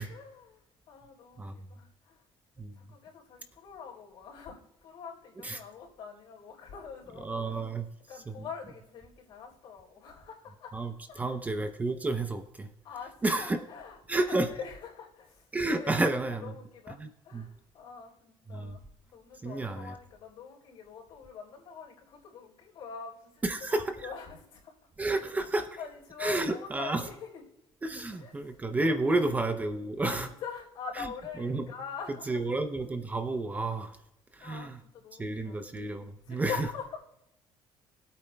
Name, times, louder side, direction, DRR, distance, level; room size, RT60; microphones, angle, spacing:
voice 1, 0.0-2.2 2.6-7.6 8.1-10.7 11.1-11.4 12.8-16.0 16.4-24.7 25.8-27.4 27.9-28.6 29.1-29.2 30.0-32.5 34.4-35.6 36.2-37.0, left 6 dB, 70° left, -3 dB, 4.0 m, -44 dB
voice 2, 7.2-7.8 8.3-8.4 10.7-12.7 13.2-13.6 14.1-14.5 15.5-16.5 17.0-17.5 18.5-18.8 19.4-19.9 23.4-24.0 25.0-25.8 26.2-27.0 27.8-30.3 31.0-31.1 31.4-31.7 32.3-34.0 34.3-34.8 35.2-36.7, right 2 dB, 15° right, 7 dB, 0.6 m, -31 dB
19.5 x 8.6 x 2.2 m, 0.83 s
cardioid pair, 145°, 9 cm